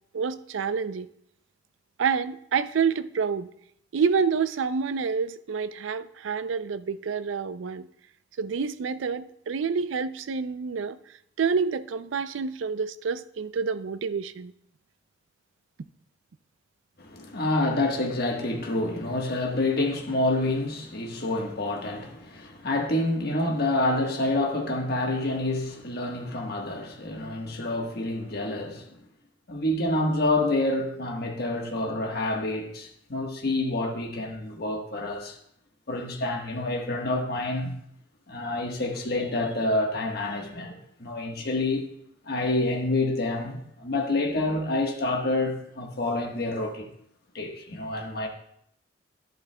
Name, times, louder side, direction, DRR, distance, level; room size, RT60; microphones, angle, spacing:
voice 1, 0.1-1.1 2.0-3.5 3.9-7.9 8.4-11.0 11.4-14.5, right 5 dB, 75° right, 0.4 m, -28 dB
voice 2, 17.0-28.9 29.5-35.4 35.9-37.7 38.3-41.9 42.2-46.9 47.3-48.3, left 2 dB, 50° left, 1.3 m, -28 dB
11.5 x 10.5 x 2.2 m
head